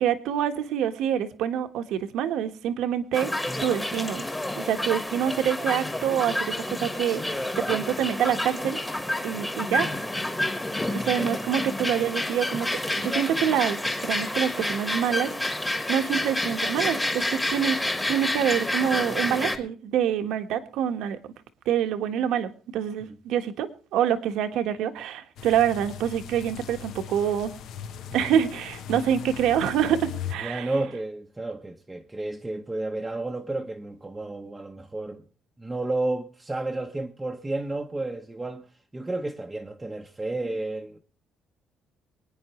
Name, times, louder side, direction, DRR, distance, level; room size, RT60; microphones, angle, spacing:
voice 1, 0.0-3.3 3.6-4.3 4.6-8.8 9.2-9.9 10.2-10.5 10.9-12.7 12.9-13.8 14.0-15.6 15.9-17.8 18.1-21.2 21.6-27.5 28.1-30.7, right 9 dB, 80° right, 1.4 m, -26 dB
sound 1, 3.1-19.6, left 1 dB, 10° left, 1.4 m, -29 dB
voice 2, 9.8-10.1 19.2-19.6 23.0-23.1 28.1-28.5 30.4-35.2 35.6-38.6 38.9-41.0, right 2 dB, 10° right, 0.8 m, -32 dB
sound 2, 25.4-30.3, left 9 dB, 70° left, 1.0 m, -38 dB
24.5 x 9.6 x 3.1 m
cardioid pair, 150°, 0 cm